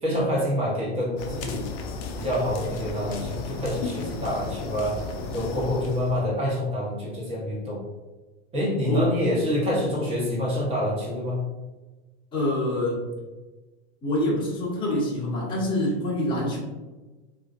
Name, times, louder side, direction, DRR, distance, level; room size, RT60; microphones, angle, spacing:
voice 1, 0.0-1.6 2.2-5.0 5.3-7.8 8.5-11.4, left 1 dB, 15° right, -5 dB, 1.1 m, -27 dB
sound 1, 1.2-6.2, left 4 dB, 35° left, 0.4 m, -34 dB
voice 2, 12.3-13.0 14.0-16.6, left 1 dB, 15° left, -7 dB, 1.1 m, -26 dB
3.8 x 2.5 x 2.4 m, 1.2 s
supercardioid pair, 140°, 33 cm